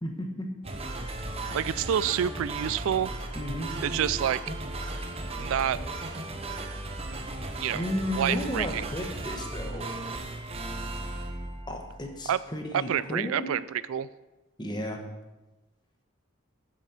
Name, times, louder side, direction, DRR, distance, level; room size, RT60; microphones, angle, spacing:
voice 1, 0.0-0.5 3.3-3.7 7.7-9.9 11.7-13.5 14.6-15.0, equal, 20° left, 3 dB, 1.2 m, -33 dB
sound 1, 0.6-12.2, right 2 dB, 30° right, 0.8 m, -36 dB
voice 2, 1.5-3.1 3.8-4.4 5.4-5.8 7.6-7.8 8.1-8.9 12.3-12.4 12.7-14.1, right 9 dB, 75° right, 18 dB, 0.3 m, -28 dB
7.4 x 7.3 x 7.0 m, 1.1 s
head